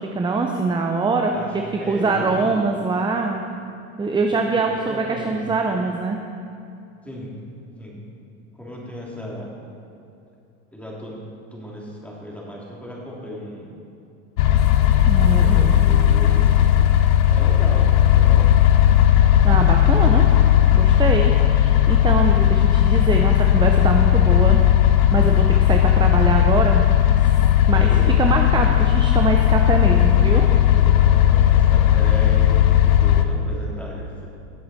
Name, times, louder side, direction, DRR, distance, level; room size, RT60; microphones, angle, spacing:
voice 1, 0.0-1.3 1.9-3.4 4.0-6.2 15.1-15.8 19.4-20.2 20.8-24.6 25.1-26.8 27.2-27.3 27.7-30.4, right 3 dB, 10° right, 3 dB, 0.6 m, -23 dB
voice 2, 1.3-2.7 4.3-5.5 7.0-7.3 7.8-8.0 8.5-9.5 10.7-11.2 11.5-13.8 15.3-16.6 17.3-18.5 27.8-28.3 29.8-30.2 30.7-34.3, equal, 5° left, -4 dB, 2.9 m, -35 dB
sound 1, 14.4-33.3, left 11 dB, 90° left, 0.9 m, -16 dB
17.5 x 7.7 x 4.2 m, 2.6 s
supercardioid pair, 115°, 40 cm